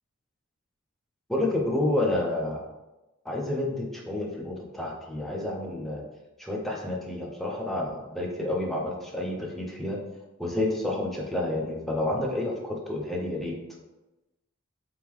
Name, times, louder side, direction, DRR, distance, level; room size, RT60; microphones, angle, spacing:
voice 1, 1.3-2.6 3.3-6.0 6.4-10.0 10.4-13.6, left 1 dB, ahead, -2 dB, 0.5 m, -29 dB
3.5 x 3.3 x 3.1 m, 1.1 s
head